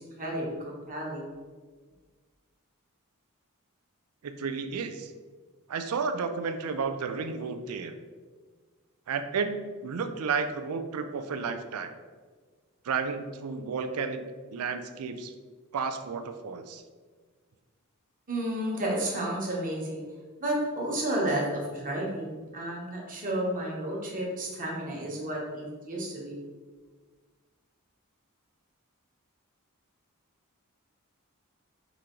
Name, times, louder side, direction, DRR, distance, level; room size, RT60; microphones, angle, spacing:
voice 1, 0.0-1.3 18.3-20.0 20.4-26.4, right 1 dB, 40° right, -3 dB, 1.1 m, -32 dB
voice 2, 4.2-5.1 5.7-7.9 9.1-11.9 12.8-14.2 14.5-15.3 15.7-16.8, right 5 dB, 85° right, 8 dB, 0.4 m, -32 dB
5.0 x 2.8 x 3.7 m, 1.5 s
head